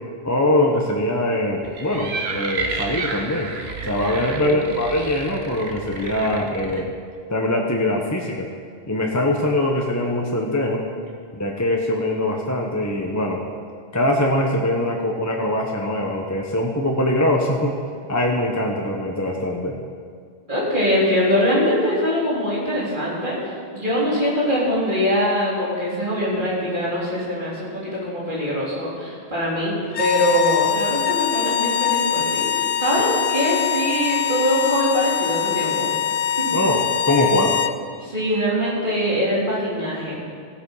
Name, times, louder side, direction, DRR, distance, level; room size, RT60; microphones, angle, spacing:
voice 1, 0.2-3.5 3.8-6.9 7.3-8.5 8.9-10.8 11.3-13.4 13.9-17.7 18.1-19.8 36.5-36.8 37.1-37.6, left 1 dB, 15° left, 0 dB, 1.0 m, -22 dB
sound 1, 1.6-6.8, right 3 dB, 75° right, 1.3 m, -31 dB
voice 2, 20.5-35.9 36.4-36.6 38.0-40.2, equal, 50° right, -7 dB, 3.9 m, -23 dB
sound 2, 29.9-37.8, left 9 dB, 65° left, 0.8 m, -23 dB
16.0 x 8.7 x 5.5 m, 2.1 s
omnidirectional pair, 1.1 m